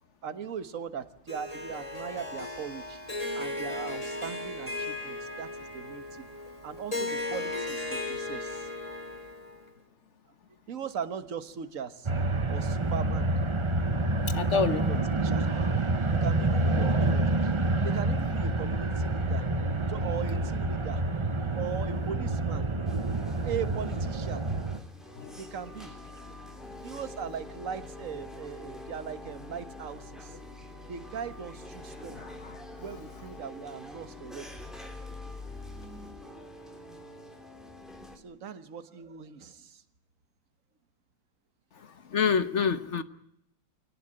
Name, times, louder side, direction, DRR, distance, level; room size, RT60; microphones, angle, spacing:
voice 1, 0.2-3.0 3.4-6.3 6.6-8.7 10.7-12.1 12.5-13.3 14.5-15.5 16.1-19.5 19.9-21.0 21.6-22.7 23.4-24.4 25.4-26.0 26.8-30.4 30.9-32.2 32.8-34.6 38.2-39.8, right 7 dB, 45° right, 11 dB, 1.7 m, -39 dB
Harp, 1.3-9.7, left 2 dB, 20° left, 3.1 m, -36 dB
sound 1, 12.0-24.8, right 2 dB, 30° right, 0.6 m, -28 dB
voice 2, 14.3-14.8 25.2-25.3 32.2-32.5 42.1-43.0, left 6 dB, 45° left, 13 dB, 1.1 m, -27 dB
sound 2, 22.9-38.2, left 2 dB, ahead, 3.4 m, -45 dB
24.0 x 18.0 x 8.8 m, 0.78 s
omnidirectional pair, 2.0 m